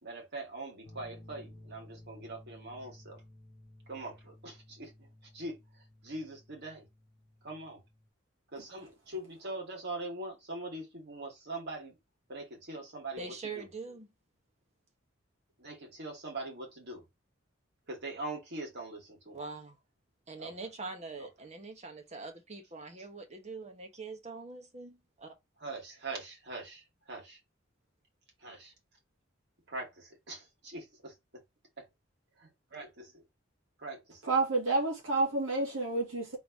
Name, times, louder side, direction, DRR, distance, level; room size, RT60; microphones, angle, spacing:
voice 1, 0.0-3.2 3.9-5.1 5.3-5.6 6.0-6.9 7.4-7.8 8.5-11.9 12.3-13.7 15.6-17.0 17.9-19.4 20.4-20.7 21.2-21.3 25.6-27.4 28.4-28.7 29.7-31.1 32.4-33.2 33.8-34.2, right 2 dB, 60° right, 2.4 m, -42 dB
sound 1, 0.8-8.1, left 1 dB, 35° left, 1.2 m, -55 dB
voice 2, 13.2-14.1 19.3-19.8 20.3-25.3, right 4 dB, 35° right, 1.1 m, -43 dB
voice 3, 34.2-36.4, right 3 dB, 80° right, 1.9 m, -29 dB
3.9 x 3.3 x 4.0 m
head